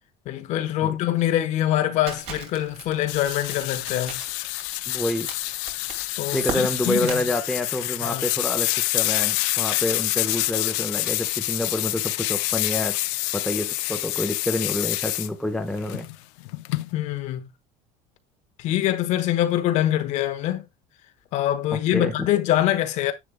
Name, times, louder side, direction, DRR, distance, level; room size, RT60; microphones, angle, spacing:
voice 1, 0.3-4.2 6.2-6.4 6.9-7.2 8.0-8.3 16.9-17.5 18.6-20.6 21.3-23.1, left 13 dB, 50° left, 1.0 m, -24 dB
Crackle, 2.1-7.2, right 5 dB, 40° right, 2.5 m, -38 dB
sound 1, 3.1-15.3 15.8-16.9, left 19 dB, 85° left, 0.7 m, -27 dB
voice 2, 4.9-5.3 6.3-13.0 13.3-16.1 21.9-22.1, left 1 dB, ahead, 1.0 m, -28 dB
10.0 x 8.3 x 2.2 m
cardioid pair, 170°, 16 cm